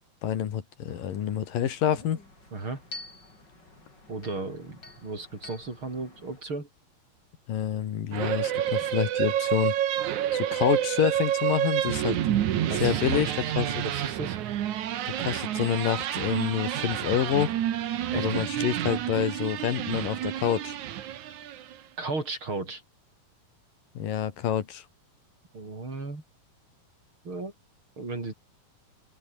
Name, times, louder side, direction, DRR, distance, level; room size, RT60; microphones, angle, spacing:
voice 1, 0.2-2.2 7.5-9.8 10.3-12.2 12.8-13.3 13.6-13.8 15.2-17.5 18.1-20.8 24.0-24.9, left 9 dB, 80° left, 3.7 m, -27 dB
sound 1, 0.9-6.4, left 2 dB, 30° left, 7.2 m, -48 dB
voice 2, 2.5-2.8 4.1-6.7 12.7-14.4 18.1-18.5 22.0-22.8 25.5-26.2 27.2-27.5 28.0-28.3, right 3 dB, 35° right, 6.0 m, -35 dB
sound 2, 8.1-21.7, right 11 dB, 65° right, 2.7 m, -29 dB
open air
omnidirectional pair, 3.9 m